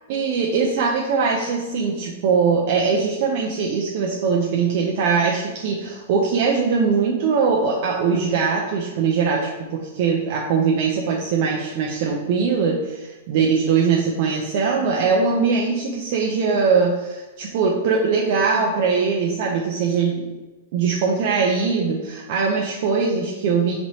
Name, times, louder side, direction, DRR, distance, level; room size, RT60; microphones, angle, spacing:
voice 1, 0.1-20.3 20.7-23.8, right 5 dB, 45° right, -1 dB, 0.4 m, -21 dB
4.4 x 3.0 x 2.7 m, 1.1 s
supercardioid pair, 170°, 0 cm